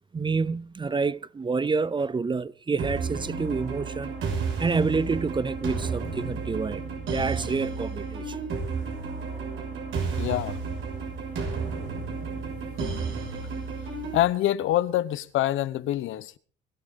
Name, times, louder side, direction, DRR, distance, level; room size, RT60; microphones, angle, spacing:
voice 1, 0.1-4.1 4.6-6.8 7.1-8.2, right 4 dB, 25° right, 0.6 m, -28 dB
sound 1, 2.8-14.2, right 4 dB, 80° right, 6.1 m, -32 dB
voice 2, 10.2-10.5 14.1-16.4, left 13 dB, 85° left, 1.0 m, -25 dB
22.0 x 12.0 x 3.8 m
cardioid pair, 90°, 20 cm